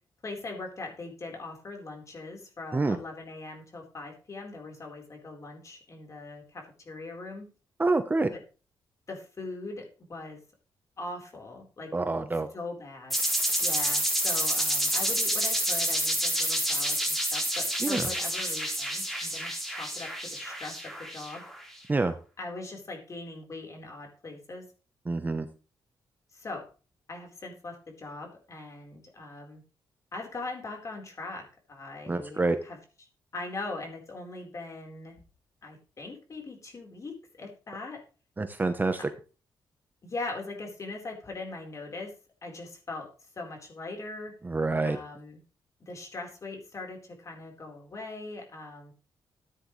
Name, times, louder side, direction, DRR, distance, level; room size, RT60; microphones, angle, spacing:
voice 1, 0.2-7.5 8.3-8.4 9.1-10.4 11.0-11.9 12.5-13.2 13.6-21.4 22.4-24.7 26.3-26.7 27.1-29.6 30.1-32.8 33.3-35.2 35.6-38.0 40.0-42.1 42.4-43.1 43.4-44.3 44.8-45.4 45.9-48.9, left 3 dB, 40° left, 2 dB, 4.3 m, -41 dB
voice 2, 7.8-8.3 11.9-12.5 17.8-18.1 21.9-22.1 25.1-25.5 32.1-32.6 38.4-39.0 44.4-45.0, right 3 dB, 20° right, 9 dB, 1.0 m, -27 dB
sound 1, 13.1-21.6, equal, ahead, 4.0 m, -28 dB
14.5 x 9.7 x 3.3 m, 0.35 s
cardioid pair, 115°, 8 cm